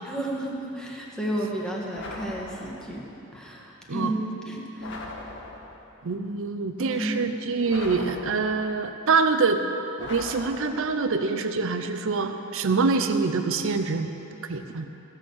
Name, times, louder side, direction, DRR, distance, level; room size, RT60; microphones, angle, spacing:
voice 1, 0.0-3.0 3.3-5.1 6.8-7.3, right 1 dB, 5° left, -4 dB, 1.7 m, -32 dB
sound 1, 1.9-3.0 4.8-5.9 7.7-8.8 10.0-11.1, left 2 dB, 60° left, 1.5 m, -40 dB
voice 2, 6.0-9.6 10.0-14.1 14.4-14.9, right 4 dB, 65° right, 7 dB, 0.6 m, -25 dB
15.5 x 6.6 x 7.3 m, 2.9 s
head